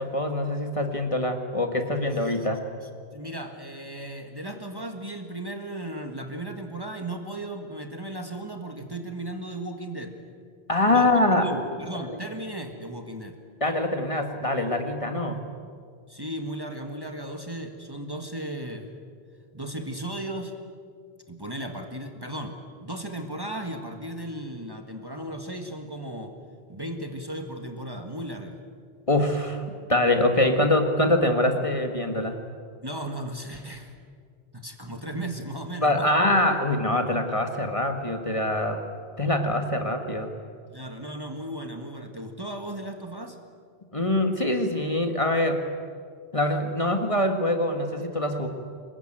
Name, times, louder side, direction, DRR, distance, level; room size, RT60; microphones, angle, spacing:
voice 1, 0.0-2.6 10.7-11.8 12.1-12.2 13.6-15.4 29.1-29.6 29.9-32.4 35.8-38.8 39.2-40.3 43.9-45.6 46.3-48.5, left 1 dB, 30° left, 5 dB, 1.8 m, -24 dB
voice 2, 3.1-10.2 10.9-11.1 11.4-13.4 16.1-18.9 19.5-20.5 21.3-26.4 26.7-28.6 32.8-33.9 34.5-36.2 40.7-43.4, right 1 dB, 20° right, 4 dB, 1.8 m, -36 dB
25.0 x 21.0 x 9.1 m, 2.1 s
omnidirectional pair, 1.1 m